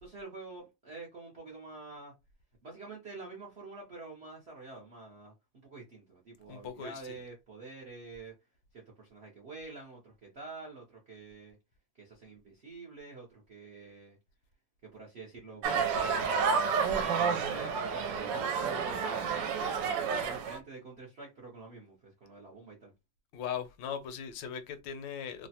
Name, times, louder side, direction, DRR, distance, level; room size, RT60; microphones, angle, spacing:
voice 1, 0.0-2.1 2.6-8.3 8.7-11.6 12.0-14.2 14.8-15.6 15.9-16.7 17.3-22.9, right 3 dB, 60° right, 0.6 m, -47 dB
voice 2, 6.5-7.1 23.3-25.5, left 8 dB, 80° left, 1.3 m, -39 dB
sound 1, 15.6-20.6, right 6 dB, 80° right, 1.2 m, -30 dB
3.1 x 2.1 x 2.7 m
omnidirectional pair, 2.0 m